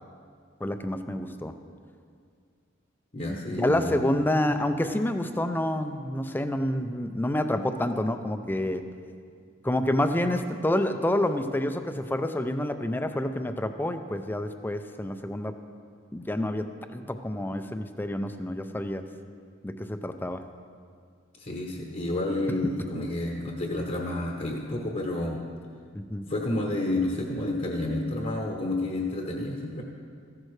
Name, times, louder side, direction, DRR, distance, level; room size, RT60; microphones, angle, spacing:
voice 1, 0.6-1.5 3.5-8.8 9.6-15.5 16.1-19.1 19.6-20.4 25.9-26.2, left 1 dB, 10° left, 8 dB, 0.4 m, -28 dB
voice 2, 3.1-4.0 21.4-25.4 26.3-29.8, left 1 dB, 40° left, 0 dB, 0.9 m, -30 dB
14.5 x 10.5 x 3.2 m, 2.1 s
head